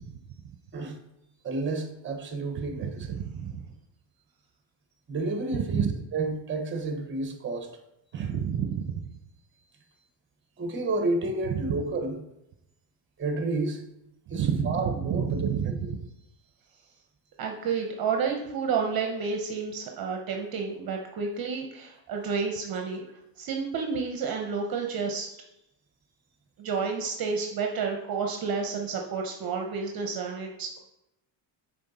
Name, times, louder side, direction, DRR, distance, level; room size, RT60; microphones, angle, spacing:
voice 1, 1.4-3.1 5.1-5.9 6.1-7.7 8.1-8.3 10.6-12.2 13.2-13.8 14.3-15.9, right 2 dB, 25° right, 5 dB, 1.1 m, -31 dB
voice 2, 3.1-3.5 5.7-5.8 8.2-8.8 14.3-15.7 17.4-23.0 23.4-25.3 26.6-30.8, right 6 dB, 45° right, 3 dB, 0.9 m, -30 dB
6.2 x 4.1 x 4.2 m, 0.85 s
cardioid pair, 120°, 49 cm